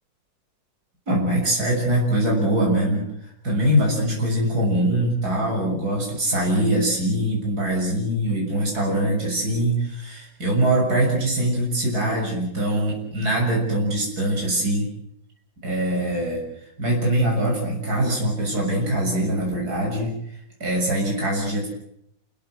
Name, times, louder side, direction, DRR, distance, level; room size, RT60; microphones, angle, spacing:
voice 1, 1.1-3.0 3.4-14.9 15.6-16.4 16.8-20.1 20.6-21.7, right 1 dB, 55° right, -1 dB, 7.6 m, -23 dB
29.5 x 17.0 x 7.9 m, 0.76 s
omnidirectional pair, 2.0 m